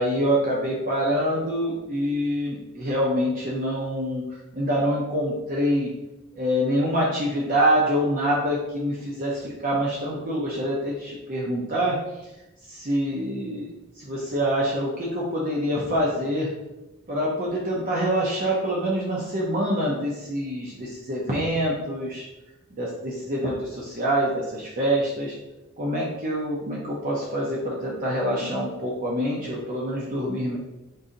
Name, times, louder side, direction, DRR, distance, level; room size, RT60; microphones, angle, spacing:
voice 1, 0.0-4.2 4.5-5.9 6.3-12.0 12.7-13.7 14.0-16.5 17.1-22.2 22.7-25.3 25.8-30.6, equal, 40° right, -4 dB, 0.6 m, -25 dB
3.8 x 2.7 x 3.8 m, 0.99 s
head